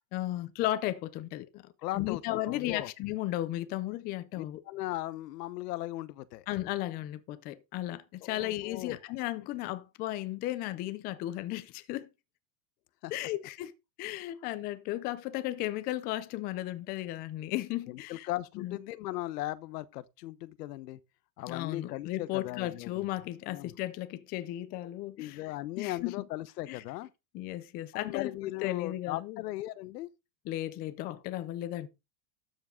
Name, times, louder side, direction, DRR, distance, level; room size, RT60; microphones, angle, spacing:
voice 1, 0.1-4.6 6.5-12.1 13.1-13.7 14.0-18.3 18.6-18.8 21.5-25.4 25.8-26.1 26.7-26.8 27.3-28.3 28.6-29.4 30.5-31.9, left 15 dB, 20° left, 0.5 m, -35 dB
voice 2, 1.8-2.9 4.4-6.4 8.2-9.0 13.0-13.1 17.9-21.0 21.4-23.1 23.4-23.7 25.2-27.1 27.9-30.1, left 16 dB, 90° left, 1.0 m, -38 dB
12.5 x 7.3 x 3.8 m
supercardioid pair, 170°, 47 cm